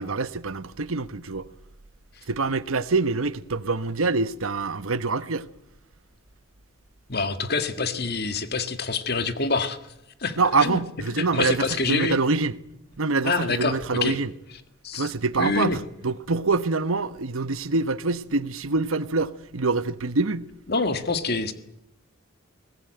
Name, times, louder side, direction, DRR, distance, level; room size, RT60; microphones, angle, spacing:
voice 1, 0.0-1.5 2.3-5.4 10.4-12.5 13.0-14.3 14.9-20.5, right 3 dB, 80° right, 1.0 m, -25 dB
voice 2, 7.1-9.8 10.2-10.8 11.1-12.2 13.2-14.2 14.8-15.8 20.7-21.5, left 4 dB, 50° left, 1.8 m, -26 dB
22.0 x 18.5 x 9.1 m
head